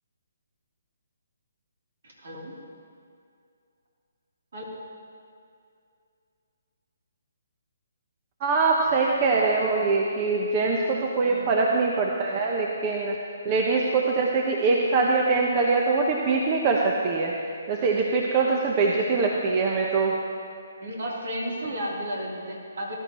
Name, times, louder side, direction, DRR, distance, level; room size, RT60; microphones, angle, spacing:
voice 1, 2.0-2.5 4.5-4.6 11.2-11.5 20.8-22.9, equal, 65° right, -3 dB, 3.5 m, -33 dB
voice 2, 8.4-13.2 13.4-17.3 17.7-20.1, right 4 dB, 30° right, -1 dB, 1.1 m, -23 dB
18.5 x 12.0 x 3.1 m, 2.4 s
hypercardioid pair, 150°, 0 cm